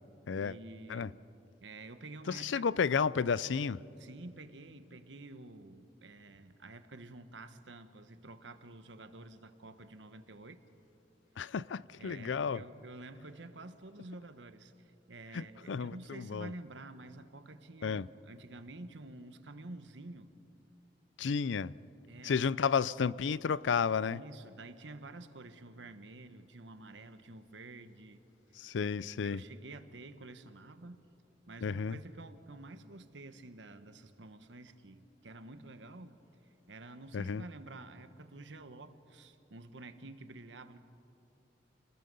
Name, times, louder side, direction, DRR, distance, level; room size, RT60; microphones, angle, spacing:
voice 1, 0.3-1.2 1.6-2.7 4.0-10.6 12.0-20.3 22.1-22.5 24.1-28.2 28.8-31.0 31.5-36.2 36.7-40.8, right 2 dB, 80° right, 1.2 m, -49 dB
voice 2, 2.3-3.8 11.4-12.6 15.3-16.5 17.8-18.1 21.2-21.7 22.2-24.2 28.6-29.4 31.6-32.0 37.1-37.4, left 6 dB, 90° left, 0.4 m, -32 dB
29.5 x 20.0 x 5.4 m
head